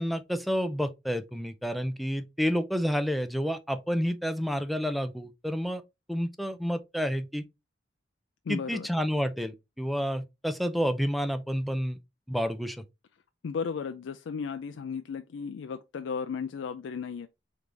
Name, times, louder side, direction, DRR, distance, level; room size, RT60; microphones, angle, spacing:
voice 1, 0.0-5.8 6.1-7.4 8.5-12.0 12.3-12.8, equal, ahead, 0.4 m, -29 dB
voice 2, 8.5-8.9 13.4-17.3, left 6 dB, 75° left, 0.4 m, -35 dB
3.4 x 3.1 x 3.8 m
head